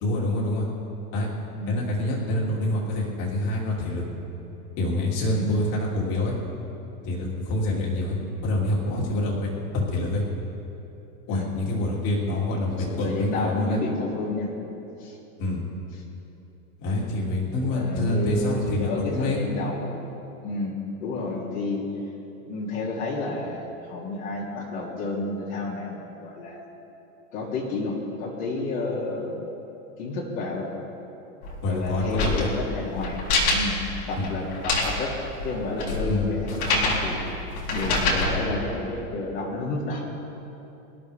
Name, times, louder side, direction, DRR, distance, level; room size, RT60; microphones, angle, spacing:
voice 1, 0.0-0.7 1.1-1.3 1.7-4.0 4.8-6.3 7.0-9.5 9.7-10.2 11.3-13.8 15.4-15.6 16.8-19.5 31.6-32.5 34.1-34.3 36.1-36.3, left 1 dB, 45° left, -3 dB, 3.2 m, -26 dB
voice 2, 12.9-14.5 15.0-15.2 17.6-20.0 20.4-21.8 22.5-26.6 27.3-29.4 30.0-30.7 31.7-33.8 34.1-35.2 35.4-37.2 37.7-40.1, left 2 dB, 65° left, -4 dB, 3.1 m, -30 dB
sound 1, 31.4-38.4, left 2 dB, 80° left, 4.0 m, -27 dB
25.5 x 11.5 x 3.6 m, 3.0 s
supercardioid pair, 135°, 44 cm